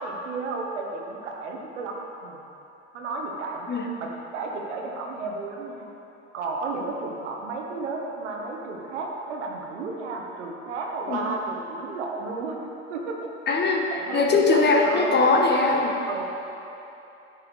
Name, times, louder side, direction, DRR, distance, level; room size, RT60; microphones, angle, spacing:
voice 1, 0.0-2.4 2.9-3.7 4.0-5.9 6.3-12.6 12.9-13.3 13.9-15.1 16.1-16.2, right 3 dB, 75° right, 0 dB, 1.4 m, -32 dB
voice 2, 13.5-16.0, left 3 dB, 30° left, 2 dB, 1.2 m, -21 dB
9.0 x 7.6 x 4.8 m, 3.0 s
hypercardioid pair, 80°, 36 cm